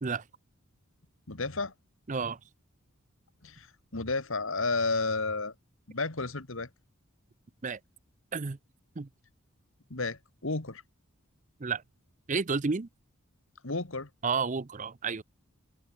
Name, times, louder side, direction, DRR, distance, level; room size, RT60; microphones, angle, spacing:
voice 1, 1.3-1.7 3.4-3.7 3.9-5.5 5.9-6.7 9.9-10.8 13.6-14.1, left 3 dB, 60° left, 2.0 m, -31 dB
voice 2, 2.1-2.4 7.6-7.8 8.3-8.6 9.0-9.1 11.6-11.8 12.3-12.9 14.2-15.2, right 5 dB, 35° right, 0.6 m, -31 dB
open air
head